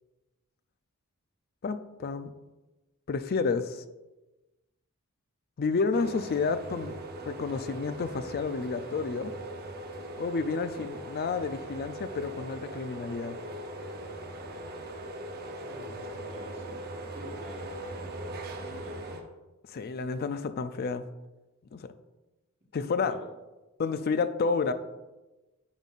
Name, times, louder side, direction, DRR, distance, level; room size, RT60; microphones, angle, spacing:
voice 1, 1.6-2.3 3.1-3.8 5.6-7.0 7.3-9.3 10.2-13.4 19.7-21.1 21.7-21.9 22.7-23.1 23.8-24.7, left 4 dB, 45° left, 0.4 m, -30 dB
sound 1, 5.9-19.2, right 1 dB, 45° right, 0.7 m, -40 dB
voice 2, 15.3-19.0 23.1-23.3, right 1 dB, 30° right, 1.3 m, -48 dB
9.1 x 5.4 x 2.5 m
head